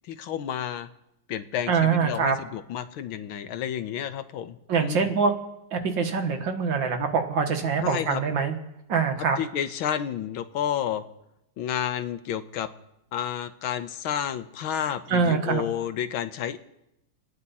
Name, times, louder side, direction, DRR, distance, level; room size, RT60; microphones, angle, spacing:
voice 1, 0.1-0.9 1.3-5.1 7.8-8.2 9.4-11.0 11.6-12.7 13.1-16.6, left 9 dB, 85° left, 11 dB, 1.7 m, -30 dB
voice 2, 1.7-2.4 4.7-5.3 5.7-8.5 8.9-9.4 15.1-15.6, right 5 dB, 65° right, 5 dB, 2.1 m, -24 dB
28.0 x 9.6 x 4.2 m, 0.87 s
omnidirectional pair, 2.2 m